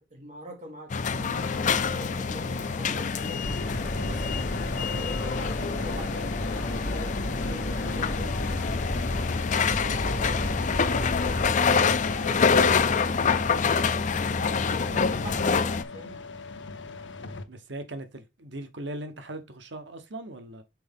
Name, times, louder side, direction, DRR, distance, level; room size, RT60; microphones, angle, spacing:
voice 1, 0.0-3.5 3.8-8.3 14.9-16.2, equal, 40° right, 2.6 m, -45 dB
sound 1, 0.9-15.8, left 5 dB, 45° left, 0.5 m, -26 dB
sound 2, 1.3-17.4, left 4 dB, 80° left, 0.8 m, -41 dB
sound 3, 3.4-11.5, left 1 dB, 60° left, 1.4 m, -33 dB
voice 2, 17.5-20.6, right 1 dB, 75° right, 1.0 m, -39 dB
5.9 x 4.6 x 3.6 m
head